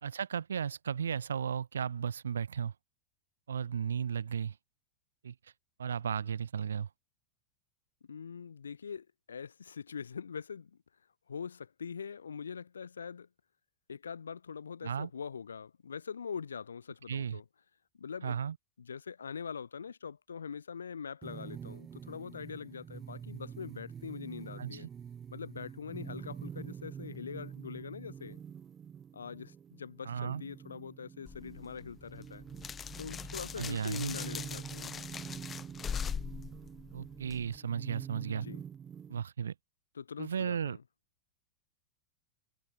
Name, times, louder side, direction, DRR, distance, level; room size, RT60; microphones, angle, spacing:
voice 1, 0.0-2.7 3.5-4.6 5.2-5.3 5.8-6.9 14.8-15.1 17.1-17.4 18.2-18.5 24.6-24.9 30.0-30.4 33.6-34.2 36.9-38.5 39.1-39.5 40.2-40.8, right 7 dB, 70° right, 5.0 m, -35 dB
voice 2, 8.1-10.8 11.3-13.3 13.9-17.4 18.0-18.4 18.8-24.9 25.3-28.4 29.1-32.4 33.0-35.1 38.3-38.6 39.9-40.8, left 6 dB, 70° left, 2.9 m, -43 dB
sound 1, 21.2-39.2, right 8 dB, 25° right, 2.2 m, -46 dB
sound 2, 31.3-37.6, left 7 dB, 20° left, 1.6 m, -41 dB
figure-of-eight pair, 90°, 0 cm